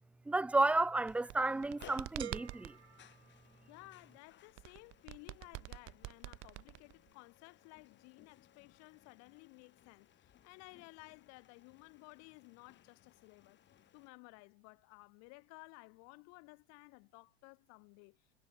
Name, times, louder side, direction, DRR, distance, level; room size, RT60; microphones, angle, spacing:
voice 1, 0.3-2.7, right 2 dB, 5° right, 0.4 m, -32 dB
sound 1, 1.0-14.1, left 11 dB, 35° left, 6.2 m, -64 dB
sound 2, 1.0-2.8 4.6-7.1, right 18 dB, 45° right, 2.5 m, -46 dB
sound 3, 2.2-4.1, right 10 dB, 80° right, 3.0 m, -50 dB
voice 2, 3.7-13.6 13.9-18.2, left 33 dB, 50° left, 3.9 m, -57 dB
hypercardioid pair, 95°, 32 cm